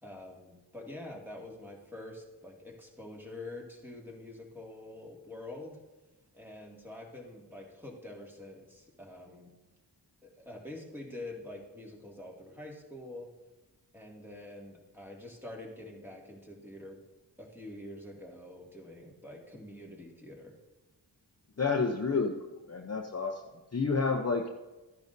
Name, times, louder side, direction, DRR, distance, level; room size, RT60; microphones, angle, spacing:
voice 1, 0.0-5.8 6.3-9.5 10.2-13.3 13.9-17.0 17.4-20.6, left 1 dB, 5° right, -2 dB, 2.2 m, -46 dB
voice 2, 21.6-22.3 22.7-23.4 23.7-24.5, left 4 dB, 35° left, 3 dB, 0.7 m, -29 dB
13.5 x 10.5 x 2.7 m, 1.1 s
wide cardioid pair, 50°, 43 cm